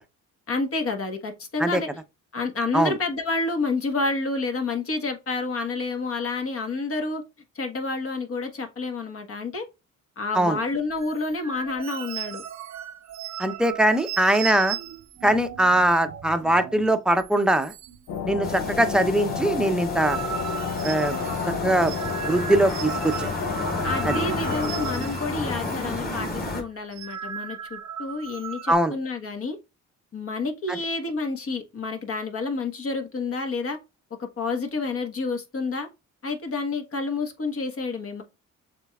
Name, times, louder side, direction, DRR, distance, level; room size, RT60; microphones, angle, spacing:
voice 1, 0.5-1.9 2.3-7.2 7.5-9.7 10.2-12.4 23.8-29.6 30.1-33.8 34.2-35.9 36.2-38.2, left 3 dB, 50° left, 1.4 m, -29 dB
sound 1, 11.0-16.9 17.2-17.3 17.6-18.2 18.5-25.8 26.1-26.3 26.8-28.7, right 9 dB, 65° right, 0.7 m, -37 dB
voice 2, 13.4-14.8 15.2-17.7 18.3-20.2 20.8-21.2 21.6-21.9 22.2-23.3 24.0-24.2 28.7-28.9 30.7-30.8, right 1 dB, 5° right, 0.7 m, -21 dB
sound 2, 18.1-25.0, left 6 dB, 75° left, 0.9 m, -31 dB
sound 3, 18.4-26.6, left 2 dB, 30° left, 2.1 m, -31 dB
6.6 x 3.3 x 2.4 m
cardioid pair, 90°, 30 cm